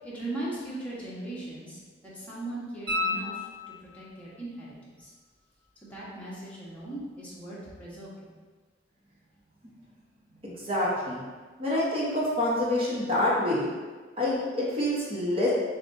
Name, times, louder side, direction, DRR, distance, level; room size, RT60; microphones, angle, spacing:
voice 1, 0.0-3.4 3.8-5.1 5.8-8.3, right 2 dB, 10° left, -9 dB, 1.2 m, -39 dB
sound 1, 2.9-4.2 7.0-7.1, left 2 dB, 65° right, 1.2 m, -32 dB
voice 2, 10.4-11.2 11.6-13.7 14.2-15.5, left 1 dB, 30° right, -7 dB, 1.0 m, -27 dB
7.1 x 2.4 x 2.7 m, 1.4 s
head